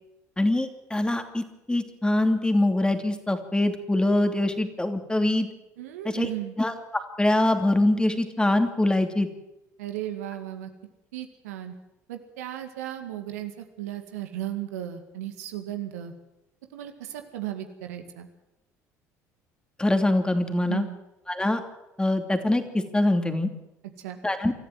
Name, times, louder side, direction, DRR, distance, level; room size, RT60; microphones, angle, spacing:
voice 1, 0.4-5.5 6.0-6.3 6.6-9.3 19.8-20.9 21.3-21.6 22.0-23.5 24.2-24.5, left 1 dB, 10° left, 6 dB, 2.9 m, -24 dB
voice 2, 5.8-6.6 9.8-10.7 11.1-11.7 12.1-16.1 16.7-18.3 20.7-21.0 24.0-24.2, right 12 dB, 75° right, 6 dB, 2.0 m, -35 dB
25.0 x 14.0 x 8.0 m, 0.94 s
hypercardioid pair, 60°, 8 cm